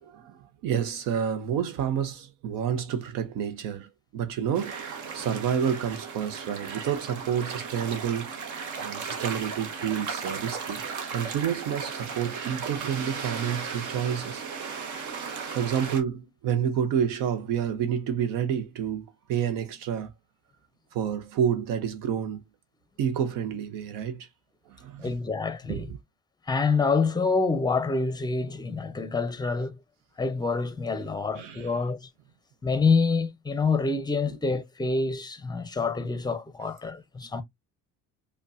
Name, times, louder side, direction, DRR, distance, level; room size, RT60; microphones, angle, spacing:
voice 1, 0.0-8.3 8.8-10.8 11.1-14.4 15.5-20.1 20.9-22.4 23.0-24.3 24.7-25.1 25.7-26.0 31.0-31.7 34.3-34.4, right 8 dB, 80° right, 0.7 m, -29 dB
sound 1, 4.5-16.0, right 5 dB, 65° right, 1.0 m, -36 dB
voice 2, 25.0-25.9 26.5-29.8 30.2-32.1 32.6-37.4, left 4 dB, 15° left, 0.6 m, -27 dB
5.1 x 2.2 x 2.5 m
cardioid pair, 105°, 33 cm